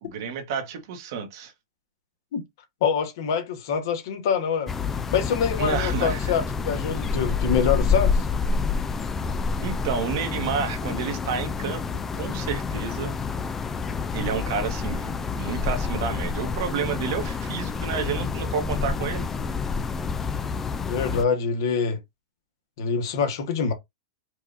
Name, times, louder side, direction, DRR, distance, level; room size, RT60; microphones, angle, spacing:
voice 1, 0.0-1.5 5.6-6.3 9.6-11.8 12.2-13.1 14.1-19.3, right 6 dB, 55° right, 1.1 m, -30 dB
voice 2, 2.8-4.7 5.1-8.3 20.9-22.0 22.8-23.7, left 6 dB, 60° left, 1.2 m, -25 dB
sound 1, 4.7-21.2, left 5 dB, 15° left, 0.3 m, -28 dB
4.7 x 2.5 x 2.6 m
supercardioid pair, 155°, 2 cm